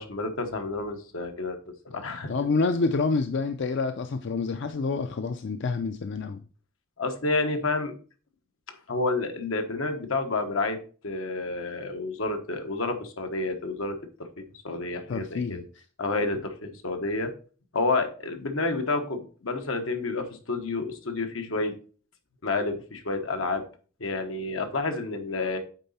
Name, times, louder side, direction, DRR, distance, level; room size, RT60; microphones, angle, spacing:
voice 1, 0.0-1.6 1.9-2.3 7.0-7.9 8.9-10.8 11.0-13.9 14.4-15.6 16.0-17.3 17.7-21.7 22.4-23.6 24.0-25.6, left 3 dB, 85° left, 6 dB, 1.2 m, -29 dB
voice 2, 2.3-6.4 15.1-15.6, left 4 dB, 60° left, 9 dB, 0.5 m, -27 dB
9.0 x 4.0 x 4.2 m, 0.39 s
head